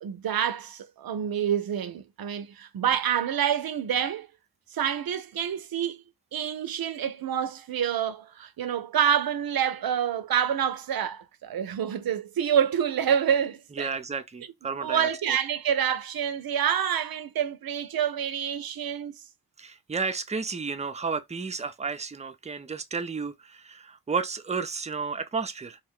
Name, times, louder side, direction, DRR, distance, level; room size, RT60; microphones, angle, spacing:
voice 1, 0.0-4.3 4.7-6.0 6.3-13.9 14.8-19.2, right 9 dB, 65° right, 0.5 m, -27 dB
voice 2, 13.8-15.1 19.6-25.8, right 5 dB, 20° right, 0.4 m, -32 dB
2.2 x 2.2 x 3.5 m
cardioid pair, 45°, 39 cm